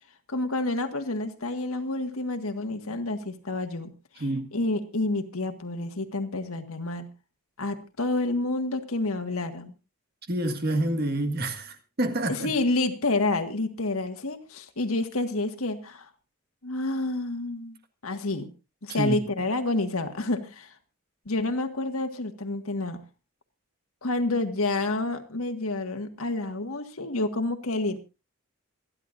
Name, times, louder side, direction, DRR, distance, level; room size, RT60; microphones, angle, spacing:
voice 1, 0.3-4.3 4.5-7.1 7.6-9.7 12.3-16.1 16.6-17.8 18.0-18.5 18.8-20.7 21.2-23.0 24.0-28.0, left 2 dB, 80° left, 1.8 m, -29 dB
voice 2, 4.2-4.5 10.3-12.5 19.0-19.2, right 1 dB, 45° right, 1.8 m, -27 dB
27.0 x 11.0 x 2.6 m
head